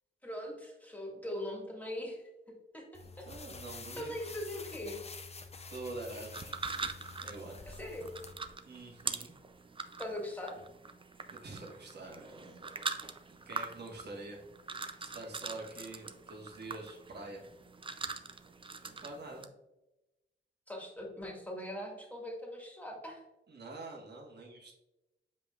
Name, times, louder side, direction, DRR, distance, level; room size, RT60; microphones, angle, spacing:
voice 1, 0.2-3.3 3.7-5.0 7.7-8.1 10.0-10.6 20.7-23.2, left 1 dB, 5° left, -1 dB, 1.9 m, -41 dB
sound 1, 2.9-8.3, left 4 dB, 30° left, 0.6 m, -48 dB
voice 2, 3.2-4.3 5.7-6.6 7.2-7.6 8.7-9.3 11.3-12.8 13.0-17.4 18.6-19.5 23.5-24.8, right 2 dB, 55° right, -2 dB, 1.5 m, -46 dB
sound 2, 6.3-19.4, right 4 dB, 25° right, 0.5 m, -43 dB
7.5 x 5.4 x 2.4 m, 0.98 s
wide cardioid pair, 110°, 21 cm